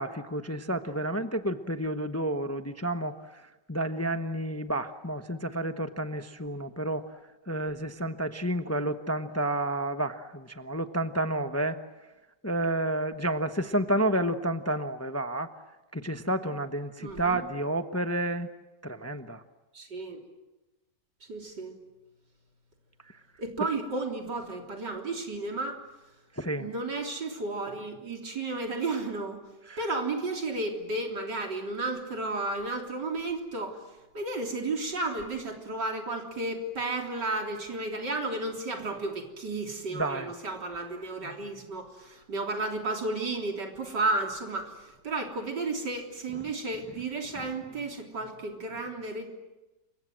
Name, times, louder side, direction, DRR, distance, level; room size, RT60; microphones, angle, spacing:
voice 1, 0.0-7.1 7.5-11.8 12.4-15.5 15.9-18.5 18.8-19.4 23.1-23.2 26.3-26.7 29.7-29.9 39.9-40.3 46.3-46.5, right 1 dB, 10° left, 8 dB, 0.8 m, -30 dB
voice 2, 17.0-17.4 19.7-20.2 21.3-21.7 23.4-25.8 26.6-29.4 29.8-33.8 34.1-49.3, right 2 dB, 85° right, 2 dB, 4.1 m, -33 dB
29.0 x 24.5 x 7.7 m, 1.1 s
omnidirectional pair, 1.8 m